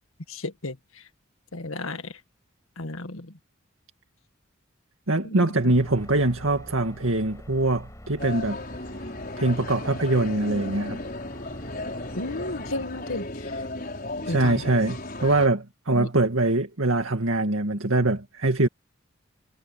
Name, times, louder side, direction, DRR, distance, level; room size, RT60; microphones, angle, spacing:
voice 1, 0.3-0.8 1.5-2.1 2.8-3.3 5.2-5.7 12.2-13.5 14.3-14.6 16.0-16.1, left 2 dB, 80° left, 1.8 m, -33 dB
voice 2, 5.1-8.6 9.4-11.0 14.3-18.7, right 2 dB, 75° right, 2.1 m, -23 dB
sound 1, 5.5-12.8, equal, 15° left, 6.0 m, -46 dB
sound 2, 8.2-15.5, left 2 dB, 45° left, 5.9 m, -35 dB
head